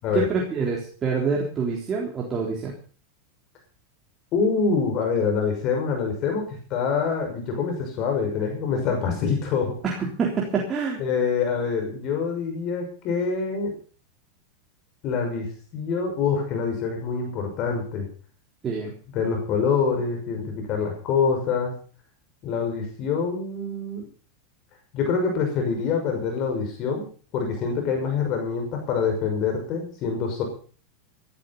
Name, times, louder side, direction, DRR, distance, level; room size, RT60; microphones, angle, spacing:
voice 1, 0.1-2.7 9.8-11.0 18.6-18.9, right 5 dB, 25° right, -2 dB, 3.8 m, -26 dB
voice 2, 4.3-9.8 11.0-13.7 15.0-15.5 15.7-18.1 19.1-21.7 22.4-24.0 24.9-27.1 27.3-30.4, left 5 dB, 45° left, 3 dB, 6.0 m, -25 dB
16.5 x 12.0 x 5.5 m, 0.41 s
supercardioid pair, 135°, 0 cm